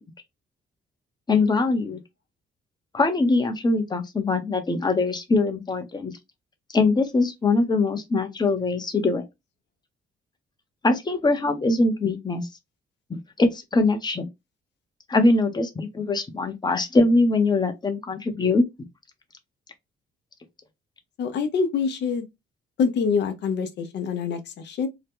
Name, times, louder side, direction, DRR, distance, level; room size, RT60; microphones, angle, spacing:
voice 1, 1.3-2.0 2.9-6.1 6.7-9.2 10.8-12.5 13.1-14.3 15.1-18.7, left 3 dB, 20° left, 0.7 m, -22 dB
voice 2, 21.2-22.3 22.8-24.9, left 5 dB, 60° left, 0.7 m, -25 dB
2.8 x 2.1 x 3.5 m
cardioid pair, 90°, 20 cm